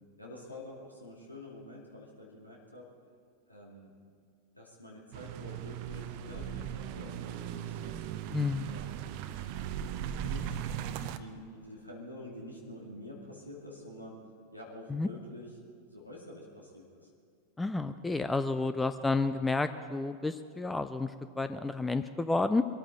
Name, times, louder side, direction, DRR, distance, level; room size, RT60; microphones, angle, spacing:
voice 1, 0.2-2.9 3.5-3.9 4.5-8.0 8.7-9.2 10.1-14.2 14.5-15.6 15.9-17.1, left 1 dB, 85° left, -3 dB, 2.3 m, -47 dB
sound 1, 5.1-11.2, right 10 dB, 45° right, 0.7 m, -38 dB
voice 2, 8.3-8.7 14.9-15.1 17.6-22.6, left 3 dB, 10° left, 11 dB, 0.5 m, -30 dB
22.5 x 14.0 x 4.0 m, 2.3 s
figure-of-eight pair, 90°, 0 cm